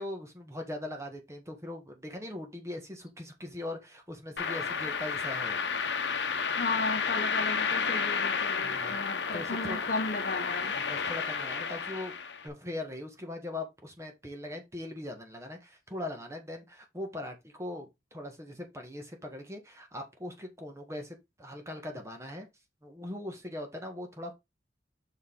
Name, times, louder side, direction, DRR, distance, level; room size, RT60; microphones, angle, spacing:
voice 1, 0.0-5.6 8.6-9.8 10.7-12.1 12.4-22.5 22.8-24.3, left 1 dB, 15° right, 1.4 m, -40 dB
sound 1, 4.4-12.5, left 5 dB, 70° left, 0.9 m, -31 dB
voice 2, 6.6-10.7, left 3 dB, 50° left, 1.2 m, -35 dB
6.4 x 4.6 x 3.8 m
head